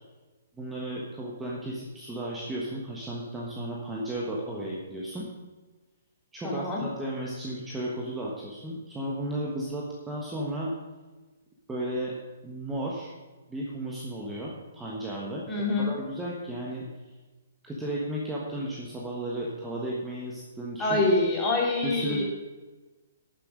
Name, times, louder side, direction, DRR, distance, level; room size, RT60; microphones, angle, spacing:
voice 1, 0.6-5.3 6.3-10.7 11.7-12.1 12.4-13.1 13.5-15.5 15.7-16.9 17.6-21.0 21.8-22.2, right 1 dB, 10° right, -4 dB, 1.4 m, -34 dB
voice 2, 6.4-6.8 15.5-15.9 20.8-22.2, left 2 dB, 15° left, -4 dB, 3.2 m, -25 dB
11.5 x 6.9 x 5.2 m, 1.2 s
hypercardioid pair, 150°, 0 cm